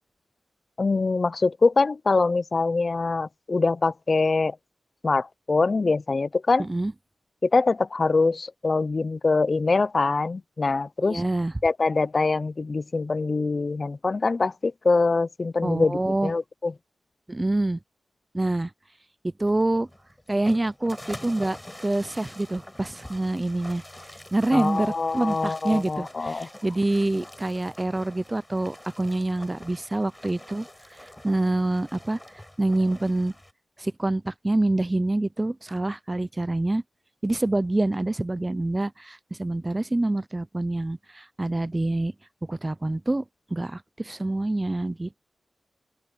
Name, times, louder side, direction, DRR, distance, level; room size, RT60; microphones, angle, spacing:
voice 1, 0.8-4.6 5.0-6.7 7.4-11.2 11.6-16.7 24.5-26.5, left 3 dB, 40° left, 0.5 m, -24 dB
voice 2, 6.6-6.9 11.0-11.5 15.6-16.3 17.3-17.8 18.3-18.7 19.2-19.9 20.3-23.8 24.3-30.7 31.0-32.2 32.6-33.3 33.8-36.8 37.2-42.1 42.5-43.2 43.5-45.2, right 2 dB, 20° right, 0.5 m, -26 dB
sound 1, 19.4-33.5, left 1 dB, 10° left, 5.5 m, -45 dB
open air
wide cardioid pair, 95°, 0 cm